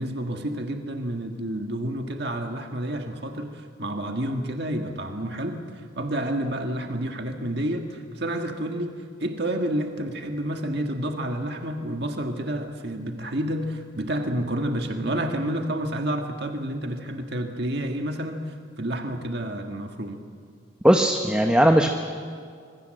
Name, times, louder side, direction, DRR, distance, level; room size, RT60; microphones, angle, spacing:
voice 1, 0.0-20.2, right 1 dB, 55° right, 4 dB, 1.7 m, -29 dB
voice 2, 20.8-21.9, equal, 5° right, 4 dB, 0.9 m, -18 dB
25.5 x 23.0 x 7.7 m, 2.2 s
head